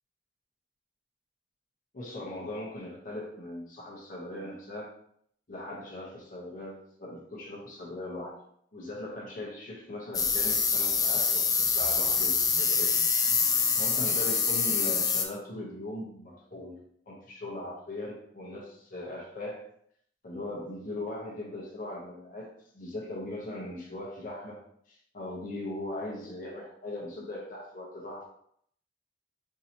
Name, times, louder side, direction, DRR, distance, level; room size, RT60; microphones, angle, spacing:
voice 1, 1.9-4.9 5.5-8.4 8.7-13.0 13.8-16.8 17.1-19.7 20.2-24.6 24.9-28.2, left 1 dB, 50° left, -3 dB, 0.9 m, -39 dB
sound 1, 10.1-15.3, left 5 dB, 20° left, 0.4 m, -25 dB
4.7 x 2.8 x 2.8 m, 0.67 s
head